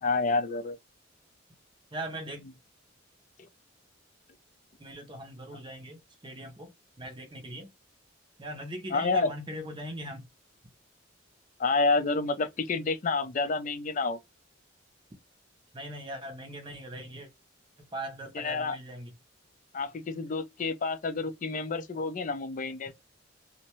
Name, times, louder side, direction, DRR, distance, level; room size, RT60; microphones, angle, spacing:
voice 1, 0.0-0.8 8.9-9.3 11.6-14.2 18.4-18.7 19.7-22.9, left 3 dB, 40° left, 0.4 m, -29 dB
voice 2, 1.9-2.4 4.8-7.7 8.4-10.3 15.7-17.3 17.8-19.1, right 1 dB, 25° right, 0.6 m, -40 dB
2.6 x 2.1 x 2.8 m
head